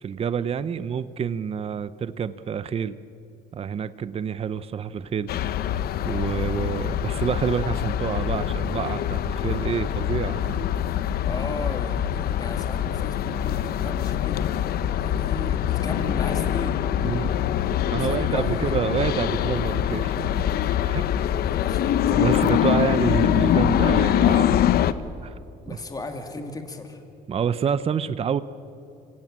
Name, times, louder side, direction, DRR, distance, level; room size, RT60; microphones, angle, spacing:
voice 1, 0.0-3.0 3.5-5.3 6.0-10.7 17.0-17.3 17.9-20.4 20.8-21.1 22.1-24.7 25.2-25.4 25.7-25.8 27.3-28.4, right 7 dB, 35° right, 14 dB, 0.7 m, -28 dB
sound 1, 5.3-24.9, left 10 dB, 65° left, 0.9 m, -24 dB
voice 2, 11.3-14.5 15.0-16.9 18.0-18.8 21.3-22.0 25.6-27.0, left 2 dB, 20° left, 4 dB, 2.8 m, -36 dB
26.0 x 17.5 x 8.8 m, 2.7 s
cardioid pair, 110°, 17 cm